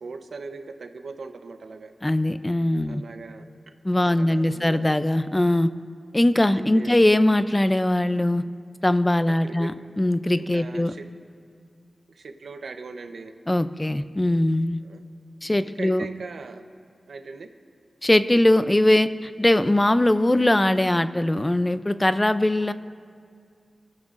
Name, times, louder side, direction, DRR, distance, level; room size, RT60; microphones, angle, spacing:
voice 1, 0.0-1.9 2.9-3.5 4.0-5.0 6.5-7.0 9.4-9.7 10.4-11.1 12.1-13.3 14.8-15.0 15.6-16.6 17.1-17.5, right 4 dB, 90° right, 7 dB, 0.8 m, -39 dB
voice 2, 2.0-3.0 3.8-5.7 6.1-8.4 8.8-10.9 13.5-14.8 15.4-16.1 18.0-22.7, left 1 dB, 15° left, 12 dB, 0.4 m, -21 dB
26.0 x 13.0 x 2.6 m, 2.1 s
wide cardioid pair, 115°, 0 cm